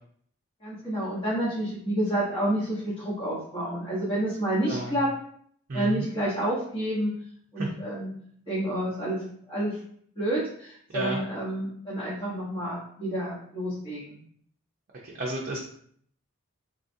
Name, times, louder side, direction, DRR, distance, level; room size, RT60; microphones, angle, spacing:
voice 1, 0.6-5.1 5.7-7.1 7.5-8.1 8.5-9.8 10.2-14.2, right 1 dB, 25° left, -10 dB, 1.0 m, -29 dB
voice 2, 5.7-6.0 10.9-11.2 15.0-15.6, right 1 dB, 45° right, -3 dB, 0.6 m, -31 dB
3.8 x 3.2 x 2.6 m, 0.63 s
head